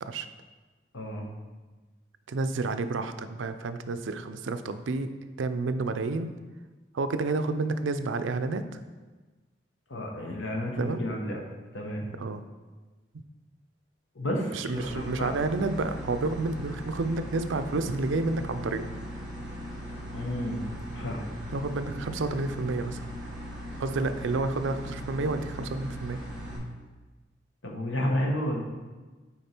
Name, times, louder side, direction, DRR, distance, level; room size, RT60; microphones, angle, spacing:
voice 1, 0.9-1.3 9.9-11.4 11.7-12.0 14.1-15.4 20.1-21.2 27.6-28.6, left 1 dB, 90° left, 1 dB, 1.1 m, -31 dB
voice 2, 2.3-5.1 5.4-6.3 6.9-8.8 10.8-11.0 12.0-12.4 14.4-18.9 21.5-23.0 23.8-26.2, right 3 dB, 85° right, 10 dB, 0.5 m, -30 dB
sound 1, 14.7-26.6, equal, 5° right, 1.5 m, -39 dB
6.6 x 4.6 x 4.4 m, 1.3 s
head